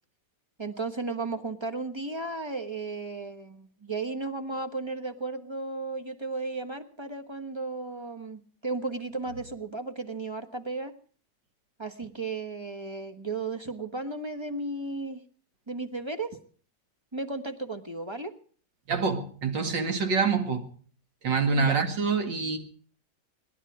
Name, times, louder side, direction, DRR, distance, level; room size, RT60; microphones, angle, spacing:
voice 1, 0.6-10.9 11.8-15.2 15.7-16.4 17.1-18.3 21.6-21.8, right 3 dB, 20° right, 1.1 m, -34 dB
voice 2, 18.9-20.7 21.2-22.6, right 5 dB, 90° right, 2.9 m, -26 dB
26.5 x 11.0 x 4.8 m
omnidirectional pair, 1.9 m